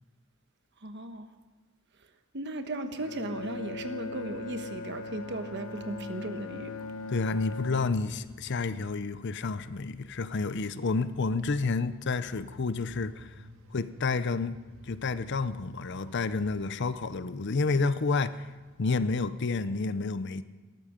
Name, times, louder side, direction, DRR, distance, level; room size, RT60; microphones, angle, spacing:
voice 1, 0.8-1.3 2.3-6.7, right 1 dB, 55° right, 8 dB, 1.2 m, -36 dB
Bowed string instrument, 3.0-8.4, left 3 dB, 80° left, 1.0 m, -40 dB
sound 1, 3.4-19.7, equal, 80° right, 1.9 m, -56 dB
voice 2, 7.1-13.3 13.7-14.6 14.8-18.5 18.8-20.4, left 4 dB, 55° left, 14 dB, 0.6 m, -30 dB
19.5 x 13.5 x 5.2 m, 1.3 s
head